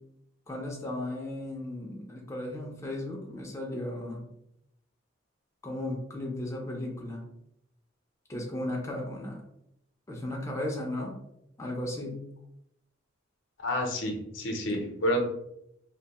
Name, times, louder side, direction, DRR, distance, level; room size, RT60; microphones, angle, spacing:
voice 1, 0.5-4.3 5.6-7.2 8.3-9.4 10.1-11.2 11.6-12.2, left 1 dB, 15° left, -1 dB, 0.4 m, -35 dB
voice 2, 13.6-15.2, equal, 70° left, 2 dB, 0.6 m, -29 dB
2.6 x 2.1 x 2.8 m, 0.80 s
head